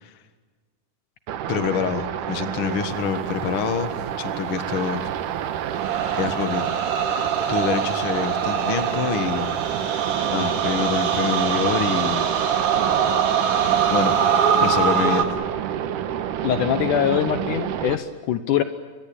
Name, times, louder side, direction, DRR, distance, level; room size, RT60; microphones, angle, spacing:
sound 1, 1.3-18.0, right 10 dB, 70° right, 2.6 m, -29 dB
voice 1, 1.5-5.1 6.1-6.7 7.5-9.5 10.3-12.3 13.9-14.2 14.6-15.3, left 7 dB, 45° left, 9 dB, 2.1 m, -26 dB
sound 2, 5.7-15.2, right 7 dB, 50° right, 2.6 m, -23 dB
voice 2, 16.4-18.6, left 10 dB, 70° left, 10 dB, 2.3 m, -23 dB
28.0 x 24.0 x 8.8 m, 1.4 s
omnidirectional pair, 4.0 m